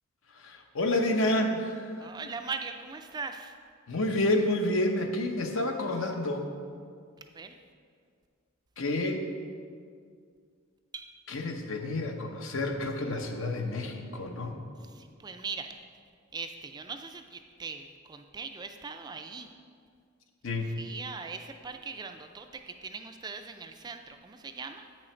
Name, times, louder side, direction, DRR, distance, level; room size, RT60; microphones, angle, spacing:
voice 1, 0.3-2.1 3.9-6.5 8.8-9.3 11.3-14.6 20.4-20.7, left 1 dB, 70° left, 4 dB, 0.8 m, -29 dB
voice 2, 2.0-3.5 7.2-7.6 10.9-11.1 14.8-15.7 16.3-19.5 20.8-24.9, right 4 dB, 20° right, 6 dB, 0.3 m, -40 dB
8.4 x 6.3 x 4.4 m, 2.2 s
head